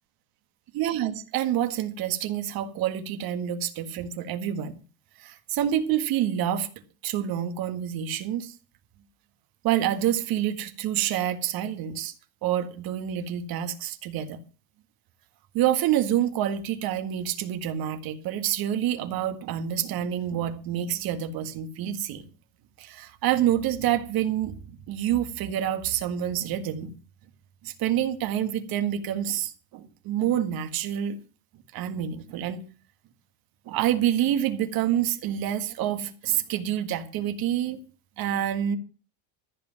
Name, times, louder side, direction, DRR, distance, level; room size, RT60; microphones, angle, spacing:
voice 1, 0.7-4.7 5.2-6.7 7.0-8.5 9.6-12.1 12.4-14.4 15.5-22.2 22.8-26.9 27.6-31.2 31.7-32.6 33.7-37.8 38.2-38.8, right 11 dB, 60° right, 1.9 m, -27 dB
14.0 x 5.2 x 9.0 m
cardioid pair, 125°, 41 cm